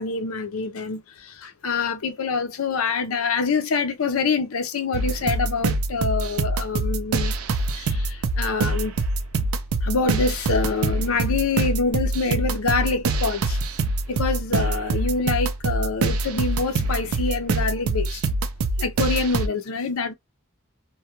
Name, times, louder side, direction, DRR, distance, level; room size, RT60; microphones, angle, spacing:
voice 1, 0.0-7.3 7.7-9.0 9.8-13.6 14.1-18.2 18.8-20.1, left 4 dB, 80° left, 0.6 m, -26 dB
sound 1, 4.9-19.5, right 2 dB, 90° right, 0.4 m, -25 dB
2.3 x 2.2 x 2.8 m
head